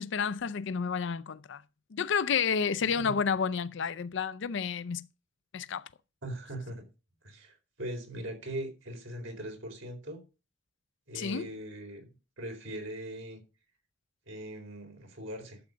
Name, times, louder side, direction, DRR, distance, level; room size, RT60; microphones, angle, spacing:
voice 1, 0.0-1.6 1.9-5.1 5.5-5.8 11.1-11.5, left 6 dB, 65° left, 0.5 m, -30 dB
voice 2, 6.2-6.8 7.2-10.2 11.1-12.1 12.4-13.4 14.3-15.6, right 1 dB, 75° right, 4.3 m, -40 dB
12.0 x 7.9 x 5.1 m
head